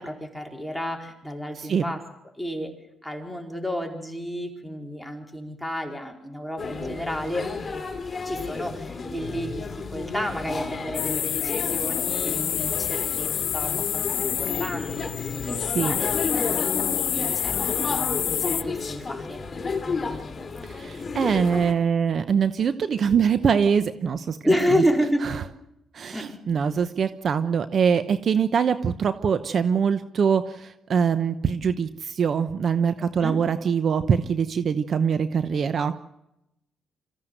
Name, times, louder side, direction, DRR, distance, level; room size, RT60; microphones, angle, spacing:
voice 1, 0.0-2.0 2.4-2.7 3.0-7.5 8.2-17.6 17.9-19.4 24.4-25.3 26.1-26.3 33.0-33.4, equal, ahead, 1 dB, 4.5 m, -30 dB
sound 1, 6.6-21.7, left 4 dB, 35° left, 2.8 m, -32 dB
sound 2, 10.9-18.6, left 10 dB, 70° left, 0.7 m, -28 dB
voice 2, 20.7-24.4 25.9-36.0, right 6 dB, 55° right, 12 dB, 0.9 m, -23 dB
25.0 x 15.0 x 7.9 m, 0.87 s
cardioid pair, 90°, 0 cm